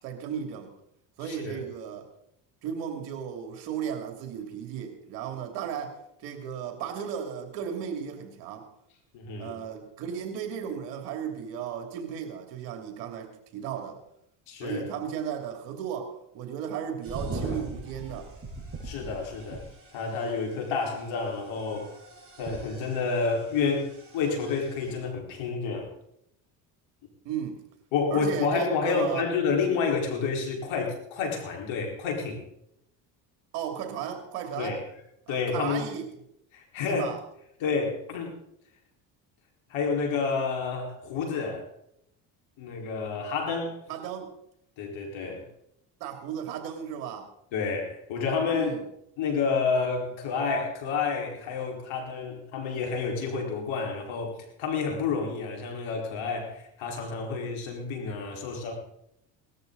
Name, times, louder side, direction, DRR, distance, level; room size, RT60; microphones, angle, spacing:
voice 1, 0.0-0.7 1.2-2.1 2.6-8.7 9.4-14.0 14.6-18.3 27.2-27.6 28.1-29.3 33.5-34.8 35.3-36.1 36.9-37.2 43.9-44.3 46.0-47.3 48.5-48.9, right 8 dB, 85° right, 5 dB, 3.0 m, -35 dB
voice 2, 1.2-1.6 9.1-9.6 14.5-14.9 18.8-19.6 19.9-21.9 22.4-25.9 27.9-32.4 34.6-34.8 35.3-35.9 36.5-37.1 37.6-38.3 39.7-41.7 42.6-43.7 44.8-45.5 47.5-48.7 49.2-58.7, left 5 dB, 70° left, 1 dB, 4.7 m, -29 dB
sound 1, 17.0-25.0, right 2 dB, 25° right, 7.8 m, -41 dB
19.0 x 13.5 x 4.0 m, 0.75 s
supercardioid pair, 80°, 48 cm